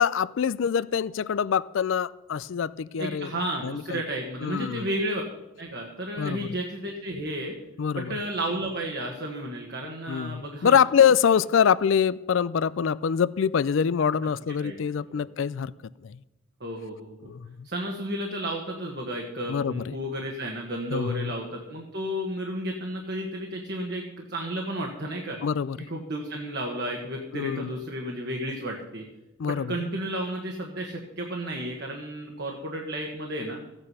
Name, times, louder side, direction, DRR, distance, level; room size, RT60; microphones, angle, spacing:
voice 1, 0.0-3.3 3.6-4.0 4.4-4.9 6.2-6.6 7.8-8.2 10.1-15.7 16.0-16.2 17.2-17.7 19.5-19.9 20.9-21.3 25.4-25.9 27.3-27.8 29.4-29.9, left 7 dB, 65° left, 18 dB, 0.4 m, -25 dB
voice 2, 3.0-5.2 5.6-7.5 7.9-10.8 14.2-14.3 14.6-14.8 15.1-15.2 16.6-17.3 17.6-25.4 25.8-29.0 29.5-33.6, right 1 dB, 50° right, 1 dB, 1.5 m, -32 dB
15.0 x 9.0 x 5.5 m, 1.0 s
head